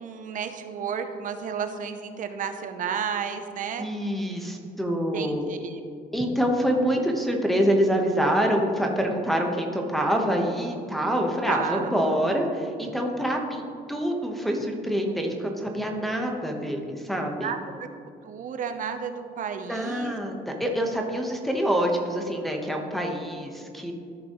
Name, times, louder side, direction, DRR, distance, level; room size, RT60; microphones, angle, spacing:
voice 1, 0.0-3.9 5.1-5.8 11.5-11.9 17.4-17.9 18.2-20.2, right 7 dB, 50° right, 7 dB, 0.8 m, -32 dB
voice 2, 3.8-5.4 6.1-17.5 19.7-23.9, equal, ahead, 0 dB, 1.1 m, -26 dB
14.0 x 5.2 x 3.1 m, 2.4 s
cardioid pair, 110°, 17 cm